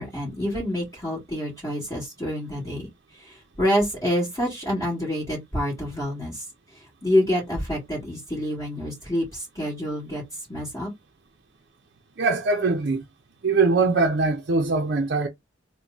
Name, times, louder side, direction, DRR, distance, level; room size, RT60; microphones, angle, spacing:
voice 1, 0.0-6.5 6.7-10.2 10.5-10.9, left 1 dB, 20° left, 1.9 m, -27 dB
voice 2, 12.2-13.0 13.4-15.3, right 3 dB, 55° right, 0.6 m, -22 dB
3.5 x 2.2 x 3.8 m
head